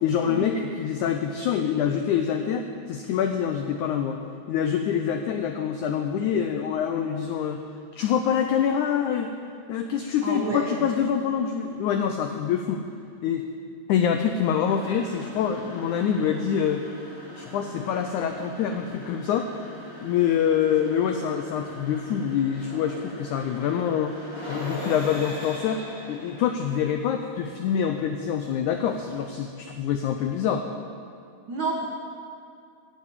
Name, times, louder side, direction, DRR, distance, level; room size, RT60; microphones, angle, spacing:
voice 1, 0.0-4.2 4.5-7.6 7.9-9.3 9.7-12.8 13.2-13.4 13.9-16.8 17.3-19.7 20.0-24.1 24.5-30.6, left 8 dB, 90° left, 6 dB, 1.7 m, -25 dB
voice 2, 10.2-10.8 31.5-31.9, right 3 dB, 80° right, -2 dB, 1.0 m, -29 dB
sound 1, 14.5-29.5, left 1 dB, 15° left, 2.7 m, -41 dB
15.0 x 7.6 x 8.6 m, 2.4 s
omnidirectional pair, 4.3 m